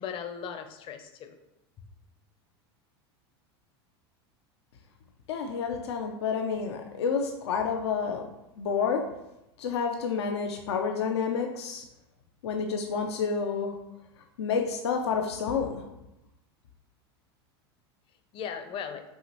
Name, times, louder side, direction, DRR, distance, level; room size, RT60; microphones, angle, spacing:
voice 1, 0.0-1.4 18.3-19.0, left 7 dB, 40° left, 7 dB, 0.6 m, -37 dB
voice 2, 5.3-8.2 8.6-9.1 9.6-11.8 12.4-13.7 14.4-15.8, left 6 dB, 85° left, 3 dB, 0.4 m, -29 dB
5.5 x 2.9 x 2.9 m, 0.91 s
hypercardioid pair, 105°, 14 cm